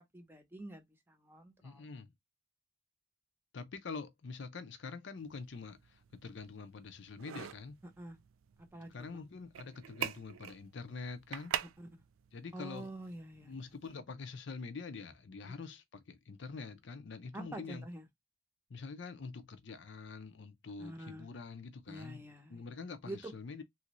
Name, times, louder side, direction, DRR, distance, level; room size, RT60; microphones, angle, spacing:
voice 1, 0.0-1.9 8.0-8.2 8.7-9.2 11.8-11.9 12.5-13.6 17.3-18.0 20.8-21.3 21.9-22.6 23.1-23.3, right 1 dB, 10° right, 0.7 m, -47 dB
voice 2, 1.6-2.1 3.5-7.8 8.9-11.6 12.3-12.9 13.4-17.9 18.7-22.2 22.5-23.6, left 4 dB, 60° left, 0.5 m, -45 dB
sound 1, 5.2-14.0, right 9 dB, 85° right, 0.3 m, -45 dB
3.1 x 2.5 x 2.9 m
head